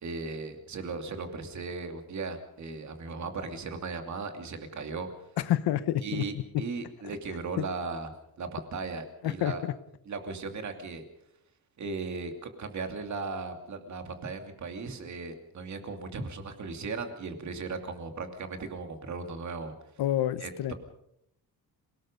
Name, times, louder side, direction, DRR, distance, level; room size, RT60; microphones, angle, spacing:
voice 1, 0.0-5.2 6.0-8.1 8.4-9.6 10.1-11.0 11.8-19.7 20.4-20.7, right 4 dB, 45° right, 6 dB, 2.7 m, -37 dB
voice 2, 5.4-6.2 7.6-7.7 9.2-9.7 20.0-20.7, left 12 dB, 85° left, 15 dB, 1.1 m, -28 dB
27.5 x 18.5 x 5.3 m, 0.76 s
cardioid pair, 165°, 38 cm